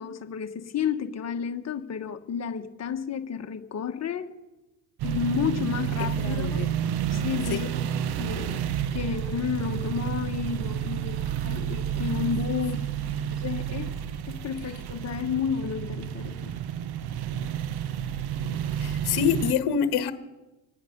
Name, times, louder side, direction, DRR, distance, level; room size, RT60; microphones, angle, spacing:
voice 1, 0.0-4.3 5.0-6.6 7.1-7.7 8.2-8.6 8.9-11.2 11.4-12.8 13.4-14.0 14.3-16.5, left 7 dB, 35° left, 7 dB, 1.5 m, -31 dB
sound 1, 5.0-19.5, right 9 dB, 55° right, 1.1 m, -30 dB
voice 2, 6.0-6.7 7.5-7.7 18.7-20.1, left 8 dB, 55° left, 9 dB, 1.5 m, -27 dB
26.5 x 9.6 x 5.4 m, 1.0 s
supercardioid pair, 80°, 45 cm